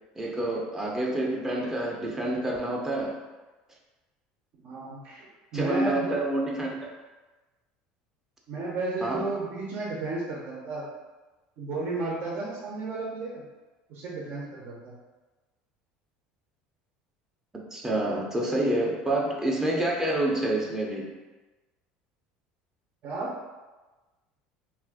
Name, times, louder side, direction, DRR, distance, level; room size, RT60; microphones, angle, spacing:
voice 1, 0.2-3.1 5.5-6.9 9.0-9.3 17.7-21.1, right 1 dB, 15° right, -2 dB, 0.6 m, -28 dB
voice 2, 4.6-5.3 5.5-6.1 8.5-10.9 11.6-13.4 13.9-14.9 23.0-23.3, right 3 dB, 55° right, -4 dB, 0.7 m, -33 dB
2.5 x 2.4 x 3.5 m, 1.2 s
supercardioid pair, 100°, 4 cm